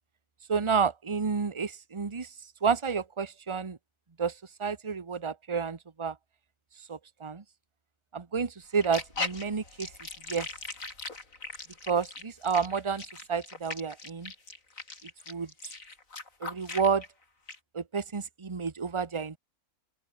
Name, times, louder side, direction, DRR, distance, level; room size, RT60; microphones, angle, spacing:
voice 1, 0.5-2.3 2.6-3.8 4.2-4.3 4.6-6.1 6.9-7.4 8.1-9.9 10.3-10.5 11.9-14.3 15.3-15.5 16.4-17.0 17.7-19.4, right 5 dB, 25° right, 1.0 m, -30 dB
sound 1, 8.7-17.1 17.5-17.6, left 3 dB, 65° left, 3.8 m, -39 dB
open air
omnidirectional pair, 1.5 m